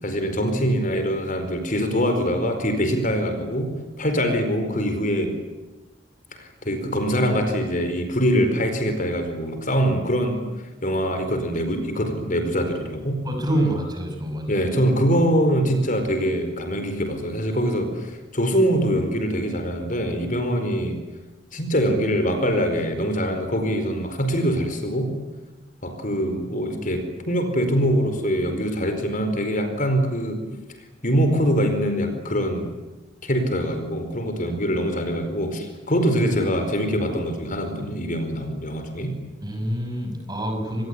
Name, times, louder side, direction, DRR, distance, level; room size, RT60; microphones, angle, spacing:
voice 1, 0.0-5.3 6.3-10.4 10.8-13.2 14.5-21.0 21.5-25.1 25.8-30.4 31.0-32.7 33.2-39.1, equal, 45° left, 7 dB, 4.6 m, -23 dB
voice 2, 13.2-14.6 39.4-40.9, right 1 dB, 20° right, 4 dB, 6.3 m, -26 dB
26.5 x 20.5 x 9.6 m, 1.1 s
head